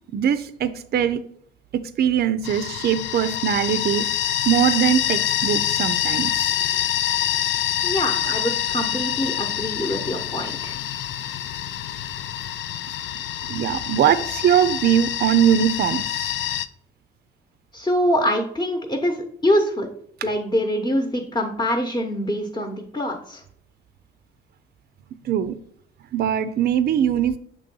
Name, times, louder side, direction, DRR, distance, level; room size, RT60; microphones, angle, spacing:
voice 1, 0.1-1.2 1.7-4.1 4.4-6.5 8.2-8.3 13.5-16.3 25.2-25.6 26.1-27.4, right 9 dB, 55° right, 13 dB, 0.5 m, -21 dB
sound 1, 2.4-16.7, left 11 dB, 75° left, 0.4 m, -26 dB
voice 2, 7.8-10.8 17.7-19.9 20.2-23.4, equal, 20° left, 3 dB, 1.0 m, -24 dB
6.7 x 3.1 x 5.3 m, 0.66 s
cardioid pair, 90°, 20 cm